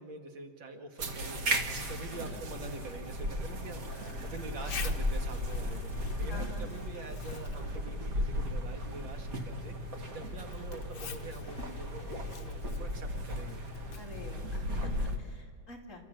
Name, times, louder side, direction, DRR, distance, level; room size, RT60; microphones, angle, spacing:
voice 1, 0.0-5.9 6.2-13.6, right 3 dB, 75° right, 5 dB, 2.4 m, -45 dB
sound 1, 1.0-15.2, equal, 45° right, 2.0 m, -36 dB
Zipper (clothing), 1.8-15.3, left 5 dB, 65° left, 1.8 m, -48 dB
voice 2, 6.3-6.7 10.6-10.7 14.0-16.0, left 1 dB, 40° left, 0 dB, 3.3 m, -47 dB
28.5 x 14.5 x 8.9 m, 2.1 s
omnidirectional pair, 2.1 m